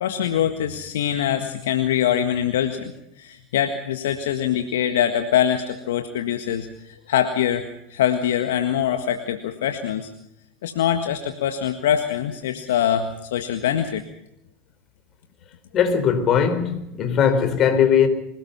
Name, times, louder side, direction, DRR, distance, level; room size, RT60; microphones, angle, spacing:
voice 1, 0.0-7.6 7.9-10.1 10.6-14.0, left 10 dB, 70° left, 1.7 m, -23 dB
voice 2, 15.7-18.1, left 7 dB, 40° left, 4.3 m, -19 dB
26.0 x 18.5 x 5.6 m
figure-of-eight pair, 80°, 0 cm